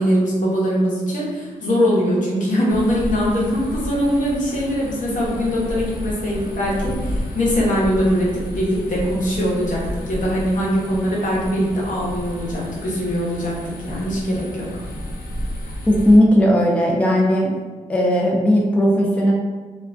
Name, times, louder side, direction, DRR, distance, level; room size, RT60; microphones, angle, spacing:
voice 1, 0.0-13.5 13.8-14.7, equal, 65° left, -6 dB, 0.9 m, -21 dB
sound 1, 2.7-16.2, left 1 dB, 85° left, 0.5 m, -31 dB
voice 2, 15.9-17.5 17.9-19.3, equal, 10° left, -2 dB, 0.4 m, -16 dB
2.4 x 2.2 x 2.4 m, 1.4 s
cardioid pair, 70°, 14 cm